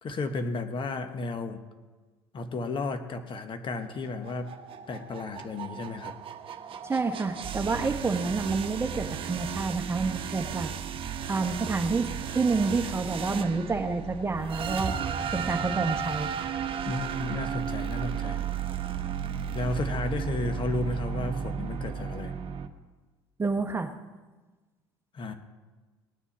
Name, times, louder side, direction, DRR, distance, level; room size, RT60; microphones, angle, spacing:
voice 1, 0.0-1.6 2.3-4.5 4.9-6.1 16.8-18.4 19.5-22.3 25.1-25.3, left 2 dB, 40° left, 7 dB, 1.4 m, -33 dB
sound 1, 3.8-22.7, right 7 dB, 45° right, 1.1 m, -34 dB
voice 2, 6.8-10.7 11.3-14.9 15.3-16.3 23.4-23.9, right 4 dB, 20° right, 6 dB, 1.2 m, -28 dB
19.0 x 9.8 x 4.3 m, 1.3 s
hypercardioid pair, 60°, 13 cm